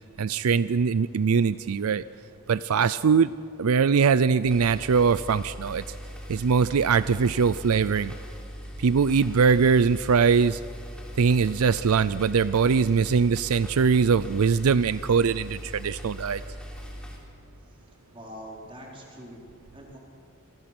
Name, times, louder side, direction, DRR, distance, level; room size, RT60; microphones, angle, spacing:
voice 1, 0.2-2.0 2.5-3.3 3.6-5.8 6.3-8.1 8.8-10.6 11.2-16.4, right 5 dB, 80° right, 15 dB, 0.5 m, -22 dB
sound 1, 4.4-17.2, equal, 5° left, 3.4 m, -40 dB
voice 2, 18.1-19.4 19.7-20.0, equal, 25° right, -2 dB, 4.4 m, -43 dB
27.5 x 21.5 x 6.1 m, 2.3 s
head